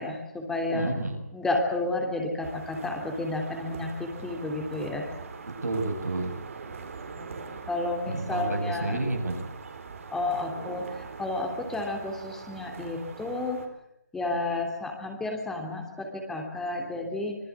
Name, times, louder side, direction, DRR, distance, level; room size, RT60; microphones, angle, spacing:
voice 1, 0.0-0.9 1.3-5.1 7.0-9.0 10.1-13.6 14.1-17.4, left 2 dB, 5° left, 2 dB, 3.0 m, -31 dB
voice 2, 0.7-1.2 5.6-6.4 8.1-9.5, right 2 dB, 85° right, 3 dB, 7.6 m, -30 dB
sound 1, 2.4-13.7, right 5 dB, 55° right, 4.4 m, -42 dB
26.0 x 20.0 x 8.4 m, 0.81 s
figure-of-eight pair, 155°, 9 cm